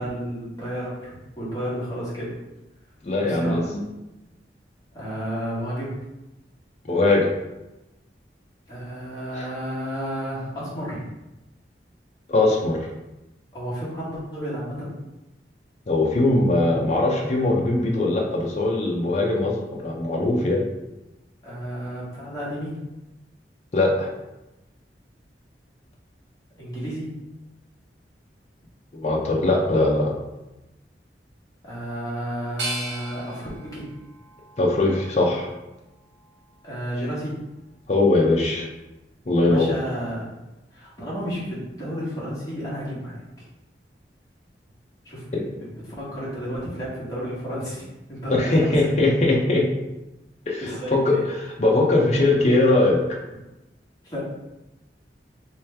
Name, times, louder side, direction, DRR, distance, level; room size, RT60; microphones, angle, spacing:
voice 1, 0.0-2.4 3.1-3.7 4.9-6.0 8.7-11.0 13.5-15.0 21.4-22.8 26.6-27.1 31.6-33.9 36.6-37.4 39.4-40.3 40.7-43.2 45.0-45.4 45.8-48.9 50.6-51.3 54.0-54.2, equal, 20° left, -9 dB, 1.4 m, -32 dB
voice 2, 3.0-3.8 6.8-7.3 9.4-9.5 12.3-12.8 15.9-20.6 23.7-24.1 28.9-30.1 34.6-35.5 37.9-38.7 39.3-39.7 45.3-45.4 48.3-49.7 50.5-50.6 50.9-51.2 51.6-53.2, left 2 dB, 40° left, -1 dB, 0.5 m, -20 dB
sound 1, 32.6-35.5 36.1-36.9, right 2 dB, 85° right, 1.1 m, -37 dB
3.1 x 3.1 x 3.3 m, 0.98 s
head